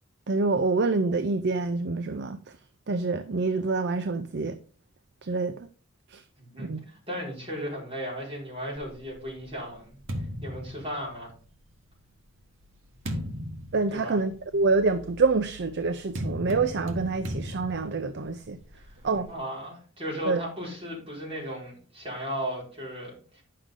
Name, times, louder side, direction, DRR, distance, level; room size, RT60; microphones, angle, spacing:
voice 1, 0.3-2.4 2.9-4.6 5.2-5.5 6.1-6.2 6.6-6.8 13.7-18.6 19.0-19.3 20.3-20.4, right 3 dB, 55° right, 0.6 m, -26 dB
voice 2, 6.4-10.0 10.4-11.3 13.9-14.2 18.8-18.9 19.3-23.4, equal, 30° right, 4.9 m, -36 dB
sound 1, 8.9-11.6 12.3-19.3, equal, 80° right, 1.4 m, -38 dB
10.0 x 6.6 x 3.7 m
head